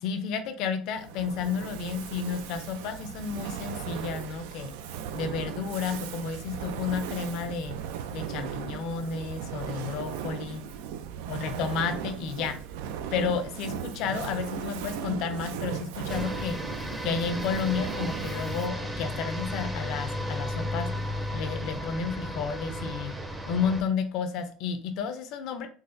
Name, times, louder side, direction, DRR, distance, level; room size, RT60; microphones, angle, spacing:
voice 1, 0.0-4.7 5.1-7.8 8.1-10.6 11.3-12.6 13.1-16.6 17.0-20.9 21.3-23.2 23.5-25.7, left 6 dB, 65° left, 9 dB, 0.5 m, -31 dB
Fire, 0.9-18.9, right 8 dB, 85° right, 0.3 m, -37 dB
sound 1, 16.1-23.8, equal, 10° right, 0.6 m, -34 dB
3.9 x 2.4 x 2.5 m, 0.43 s
supercardioid pair, 105°, 0 cm